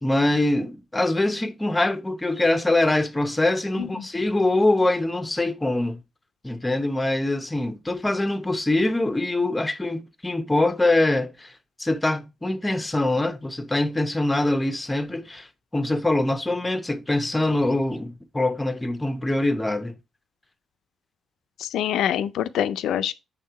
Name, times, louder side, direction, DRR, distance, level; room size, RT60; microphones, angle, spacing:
voice 1, 0.0-6.0 6.4-11.5 11.8-15.5 15.7-20.0, left 2 dB, 15° left, 0.8 m, -23 dB
voice 2, 21.6-23.1, left 10 dB, 85° left, 0.5 m, -25 dB
6.4 x 3.7 x 4.6 m
cardioid pair, 65°, 0 cm